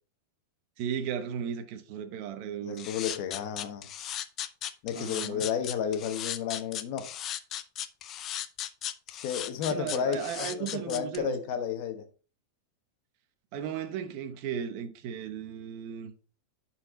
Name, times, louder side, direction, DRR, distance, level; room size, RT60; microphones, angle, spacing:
voice 1, 0.8-2.9 4.9-5.5 9.7-11.4 13.5-16.1, right 8 dB, 45° right, 1.2 m, -35 dB
voice 2, 2.6-3.9 4.8-7.1 9.1-12.0, left 8 dB, 45° left, 1.2 m, -32 dB
sound 1, 2.8-11.2, left 11 dB, 30° left, 0.6 m, -36 dB
11.0 x 4.4 x 4.0 m
supercardioid pair, 160°, 0 cm